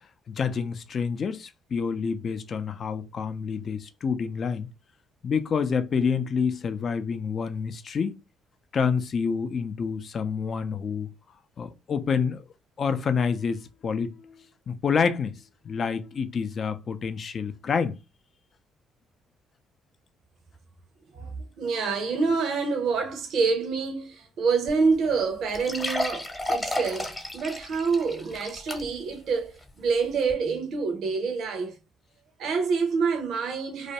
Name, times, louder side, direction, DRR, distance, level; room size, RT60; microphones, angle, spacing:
voice 1, 0.3-4.7 5.2-8.2 8.7-11.1 11.6-12.4 12.8-15.4 15.6-18.0, left 6 dB, 50° left, 0.4 m, -28 dB
voice 2, 21.1-31.8 32.4-33.9, right 4 dB, 65° right, 0.6 m, -27 dB
sound 1, 24.7-24.8 25.0-25.1 25.5-29.1 29.6-29.7 30.3-30.4, left 1 dB, 25° left, 0.8 m, -32 dB
2.4 x 2.2 x 2.7 m
hypercardioid pair, 55°, 0 cm